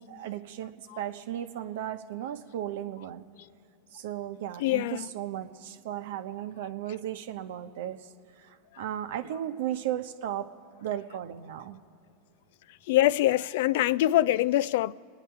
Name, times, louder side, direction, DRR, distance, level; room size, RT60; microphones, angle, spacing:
voice 1, 0.0-3.3 3.9-8.1 8.4-10.5 10.8-11.8, right 11 dB, 70° right, 0.9 m, -35 dB
voice 2, 4.6-5.1 12.9-14.9, left 14 dB, 70° left, 0.3 m, -24 dB
27.0 x 9.9 x 4.6 m
hypercardioid pair, 105°, 0 cm